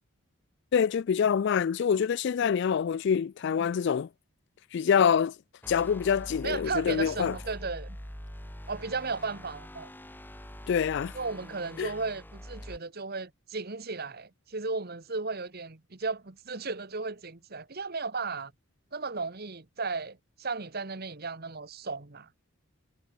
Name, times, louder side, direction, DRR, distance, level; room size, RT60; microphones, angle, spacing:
voice 1, 0.7-4.1 4.7-5.3 5.7-7.4 10.7-11.1 11.8-11.9, left 7 dB, 55° left, 0.3 m, -26 dB
sound 1, 5.6-12.8, equal, 10° left, 4.5 m, -44 dB
voice 2, 6.4-8.0 8.7-9.9 11.1-18.5 18.9-22.3, right 4 dB, 45° right, 1.4 m, -35 dB
head